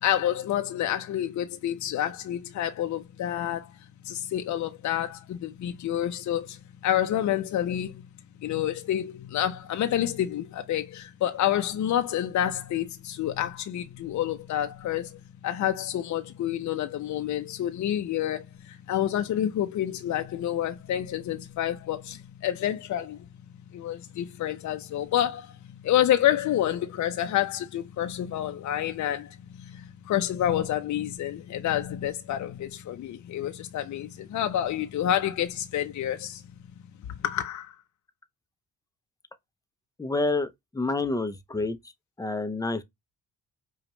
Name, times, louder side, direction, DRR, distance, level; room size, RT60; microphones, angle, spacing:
voice 1, 0.0-8.0 8.4-23.3 23.7-36.4 37.2-37.8, left 11 dB, 60° left, 0.6 m, -28 dB
voice 2, 40.0-41.8 42.2-42.8, left 3 dB, 10° left, 0.6 m, -28 dB
5.1 x 2.4 x 2.9 m
cardioid pair, 80°, 33 cm